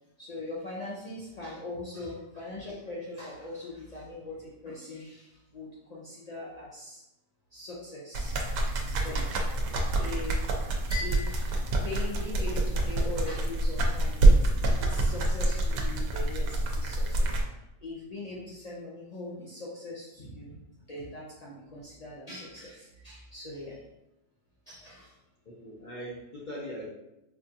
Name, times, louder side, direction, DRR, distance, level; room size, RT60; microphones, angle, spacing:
voice 1, 0.2-7.0 7.5-8.3 8.9-9.3 9.9-11.5 11.8-14.4 14.7-17.4 17.8-20.6 20.9-23.8 24.7-25.1, left 2 dB, 90° left, -5 dB, 0.3 m, -41 dB
sound 1, 8.1-17.4, right 2 dB, 90° right, 1.1 m, -26 dB
voice 2, 20.2-20.5 25.5-26.9, equal, 50° left, -5 dB, 0.6 m, -41 dB
4.5 x 2.4 x 2.7 m, 0.91 s
omnidirectional pair, 1.5 m